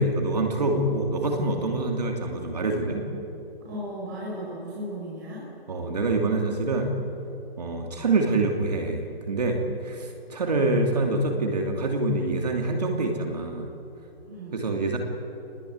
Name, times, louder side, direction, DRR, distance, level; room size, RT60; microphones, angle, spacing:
voice 1, 0.0-3.0 5.7-6.9 7.6-13.7 14.5-15.0, right 2 dB, 40° right, 2 dB, 2.7 m, -26 dB
voice 2, 3.6-5.5 14.2-14.6, equal, 20° right, -6 dB, 5.9 m, -36 dB
27.0 x 20.0 x 9.4 m, 2.9 s
hypercardioid pair, 175°, 31 cm